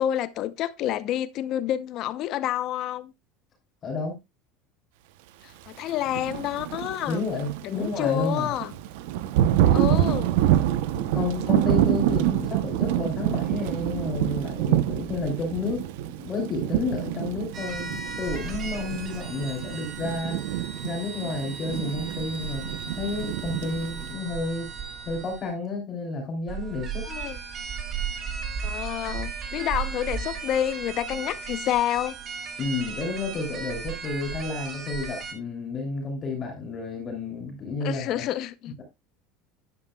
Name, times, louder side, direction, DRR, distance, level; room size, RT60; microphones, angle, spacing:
voice 1, 0.0-3.1 5.4-7.2 7.6-8.7 9.7-10.4 27.0-27.4 28.6-32.2 37.8-38.7, left 12 dB, 50° left, 0.7 m, -28 dB
voice 2, 3.8-4.1 7.1-8.5 10.9-15.8 16.2-24.7 25.0-27.1 32.6-38.2, left 3 dB, 30° left, 3.0 m, -31 dB
Thunder / Rain, 6.0-24.1, right 12 dB, 80° right, 0.8 m, -27 dB
sound 1, 17.5-25.5 26.5-35.3, right 6 dB, 35° right, 1.9 m, -35 dB
11.5 x 10.0 x 2.3 m
supercardioid pair, 140°, 0 cm